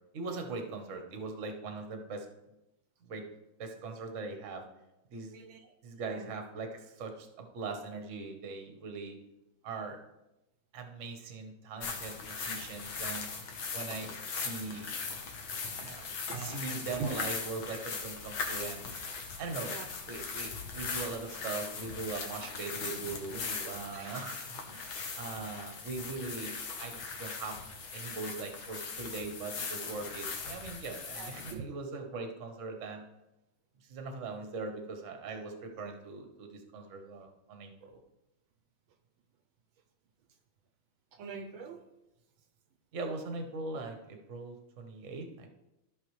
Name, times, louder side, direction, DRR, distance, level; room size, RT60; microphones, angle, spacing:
voice 1, 0.1-2.3 3.0-3.2 3.6-4.6 5.1-5.3 5.8-9.2 9.6-10.0 10.7-13.3 13.7-14.9 15.7-18.9 19.4-19.7 20.1-24.9 25.1-27.6 27.9-33.0 33.9-38.0 42.9-45.5, right 3 dB, 45° right, 4 dB, 1.2 m, -41 dB
voice 2, 5.3-5.7 6.0-6.3 14.0-14.1 14.7-14.9 15.8-17.2 19.7-19.9 23.9-24.1 31.1-31.8 41.1-41.8, right 5 dB, 80° right, 7 dB, 1.5 m, -43 dB
sound 1, 11.8-31.5, left 5 dB, 70° left, 1.9 m, -39 dB
14.0 x 5.8 x 3.2 m, 0.92 s
omnidirectional pair, 2.3 m